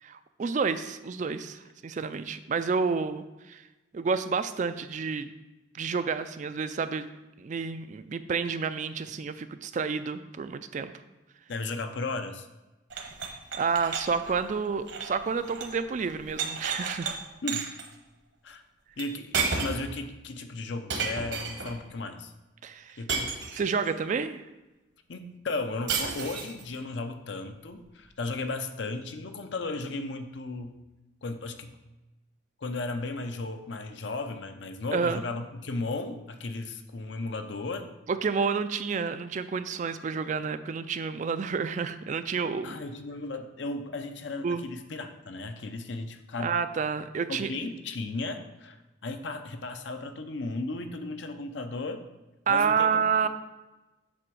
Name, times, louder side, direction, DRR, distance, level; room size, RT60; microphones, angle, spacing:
voice 1, 0.0-3.6 3.9-5.3 5.7-7.1 7.4-10.9 12.9-13.0 13.5-17.2 22.6-23.0 23.5-24.4 34.9-35.2 38.1-42.8 44.4-44.6 46.4-47.5 52.5-53.3, right 5 dB, 40° right, 12 dB, 0.3 m, -29 dB
voice 2, 11.5-12.5 17.4-17.7 18.4-18.6 19.0-22.3 23.0-23.4 25.1-30.7 31.2-31.7 32.6-37.9 42.6-46.6 47.3-48.8 49.0-52.0 52.5-53.3, left 3 dB, 65° left, 7 dB, 0.6 m, -35 dB
sound 1, 12.9-15.8 16.1-17.1 17.5-17.9 19.0-19.1 19.3-19.9 20.9-21.8 23.1-23.9 25.9-26.6, right 5 dB, 65° right, 1.0 m, -32 dB
7.8 x 3.4 x 6.2 m, 1.1 s
head